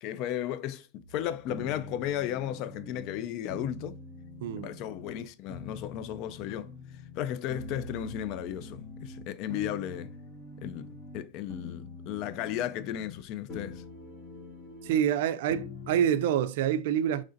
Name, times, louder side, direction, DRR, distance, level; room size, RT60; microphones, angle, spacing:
voice 1, 0.0-4.0 4.5-6.7 7.2-10.1 10.6-13.8, left 11 dB, 45° left, 0.3 m, -35 dB
sound 1, 1.0-5.2 5.5-7.2 7.5-11.2 11.5-13.2 13.5-15.0 15.5-16.1, left 2 dB, 25° left, 1.0 m, -44 dB
voice 2, 4.4-4.7 14.8-17.2, right 9 dB, 70° right, 0.3 m, -27 dB
3.2 x 2.5 x 3.8 m
supercardioid pair, 135°, 0 cm